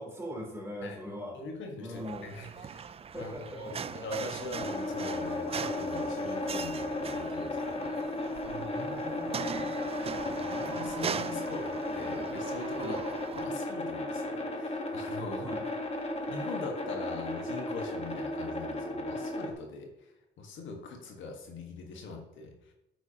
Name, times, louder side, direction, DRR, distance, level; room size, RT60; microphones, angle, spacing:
voice 1, 0.0-1.4 1.8-2.3 3.1-3.9 8.7-9.7 12.8-13.0 15.4-15.6, equal, 15° right, -1 dB, 3.1 m, -42 dB
voice 2, 0.8-2.9 3.1-3.3 3.6-7.9 8.5-8.7 10.2-15.5 16.3-22.7, left 3 dB, 75° left, 2 dB, 1.5 m, -42 dB
sound 1, 1.9-13.4, right 7 dB, 30° right, 0.4 m, -40 dB
sound 2, 4.5-19.5, left 2 dB, 30° left, 1.3 m, -35 dB
9.0 x 8.0 x 2.9 m, 0.90 s
cardioid pair, 90°, 20 cm